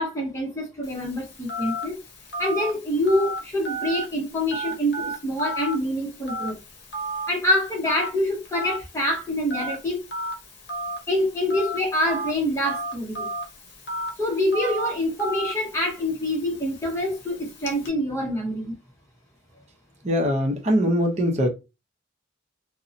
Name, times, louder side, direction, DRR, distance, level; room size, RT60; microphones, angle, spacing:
voice 1, 0.0-2.0 2.4-6.6 7.3-10.0 11.1-13.3 14.2-18.7, left 1 dB, 15° left, 0.7 m, -26 dB
Telephone, 0.8-17.9, right 1 dB, 55° left, 0.7 m, -34 dB
voice 2, 20.0-21.5, equal, 35° right, 0.6 m, -22 dB
2.6 x 2.0 x 2.6 m
head